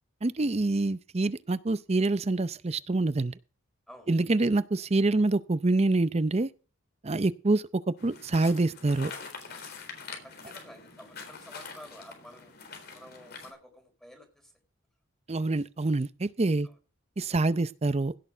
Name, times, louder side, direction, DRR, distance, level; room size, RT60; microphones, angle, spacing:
voice 1, 0.2-3.4 4.1-6.5 7.0-9.1 15.3-16.7 17.2-18.1, right 2 dB, 30° right, 0.6 m, -26 dB
sound 1, 8.0-13.5, left 5 dB, 50° left, 3.8 m, -44 dB
voice 2, 10.2-12.5 12.9-14.5 16.6-16.8, equal, ahead, 4.2 m, -50 dB
16.5 x 6.7 x 5.0 m
head